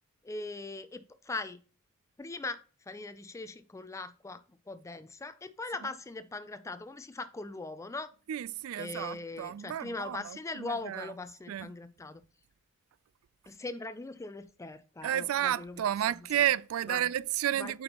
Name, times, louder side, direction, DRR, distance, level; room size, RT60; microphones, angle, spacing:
voice 1, 0.2-1.6 2.2-8.1 8.8-12.2 13.5-15.8 16.3-16.4 16.9-17.1 17.5-17.7, left 3 dB, 15° left, 0.4 m, -40 dB
voice 2, 8.3-11.1 11.5-11.7 15.0-17.8, right 11 dB, 90° right, 0.3 m, -31 dB
7.9 x 5.2 x 2.9 m
head